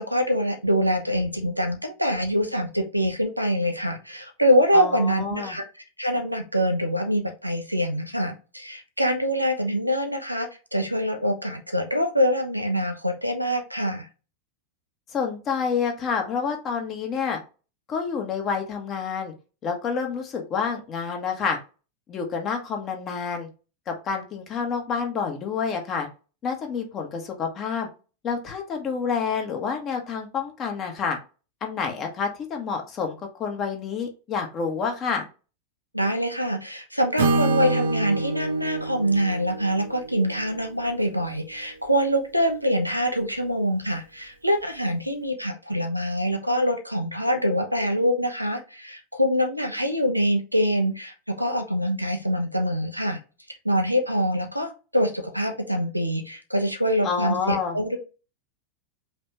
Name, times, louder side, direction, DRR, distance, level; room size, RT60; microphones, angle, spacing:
voice 1, 0.0-5.6 6.0-14.1 35.9-53.2 53.6-58.0, equal, 90° right, 6 dB, 0.9 m, -25 dB
voice 2, 4.7-5.6 15.1-17.4 17.9-19.3 19.6-21.6 22.1-23.5 23.9-26.1 26.4-27.9 28.2-31.2 31.6-35.2 57.0-57.8, left 6 dB, 30° left, 3 dB, 1.4 m, -28 dB
Acoustic guitar / Strum, 37.2-41.1, right 3 dB, 65° right, 0.9 m, -27 dB
5.0 x 3.3 x 2.9 m, 0.32 s
figure-of-eight pair, 90°, 0 cm